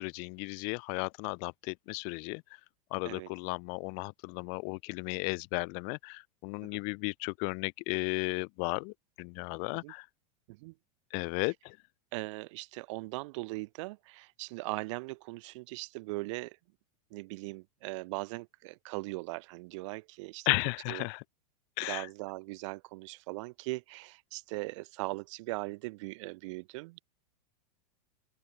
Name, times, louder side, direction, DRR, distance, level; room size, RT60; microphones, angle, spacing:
voice 1, 0.0-2.4 2.9-10.0 11.1-11.8 20.5-21.2 21.8-22.1, left 40 dB or more, 40° left, 2.4 m, -34 dB
voice 2, 12.1-16.6 17.1-20.5 20.9-21.1 21.8-27.0, right 23 dB, 50° right, 5.3 m, -39 dB
open air
supercardioid pair, 170°, 21 cm